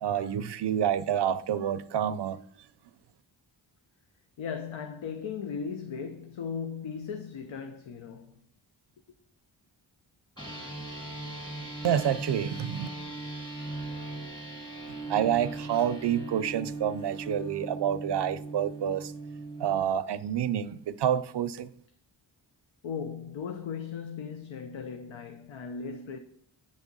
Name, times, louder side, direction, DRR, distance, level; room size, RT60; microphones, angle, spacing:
voice 1, 0.0-2.4 11.8-12.9 15.1-19.1 19.6-21.7, right 9 dB, 65° right, 0.5 m, -28 dB
voice 2, 4.4-8.3 22.8-26.2, left 6 dB, 80° left, 0.7 m, -37 dB
sound 1, 10.4-19.8, right 2 dB, 10° left, 1.9 m, -39 dB
8.7 x 3.5 x 5.2 m
cardioid pair, 55°, 46 cm